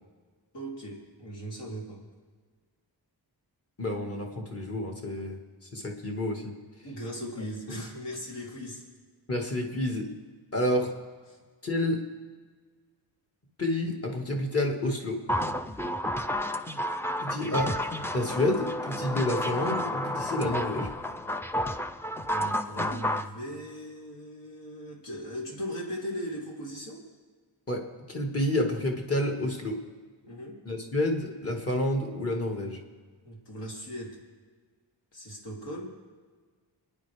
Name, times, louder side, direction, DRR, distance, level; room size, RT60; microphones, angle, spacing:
voice 1, 0.5-2.0 6.8-8.8 11.3-11.4 22.3-27.0 30.2-30.6 33.2-34.2 35.1-35.9, equal, 75° left, -2 dB, 3.1 m, -38 dB
voice 2, 3.8-5.4 5.7-6.6 7.7-7.8 9.3-10.1 10.5-10.9 11.6-12.0 13.6-15.2 17.2-17.7 18.1-20.9 27.7-29.8 30.7-32.8, left 1 dB, 35° left, 1 dB, 1.8 m, -29 dB
sound 1, 15.3-23.3, left 1 dB, 5° left, 0.4 m, -31 dB
28.0 x 10.0 x 3.4 m, 1.5 s
wide cardioid pair, 145°, 43 cm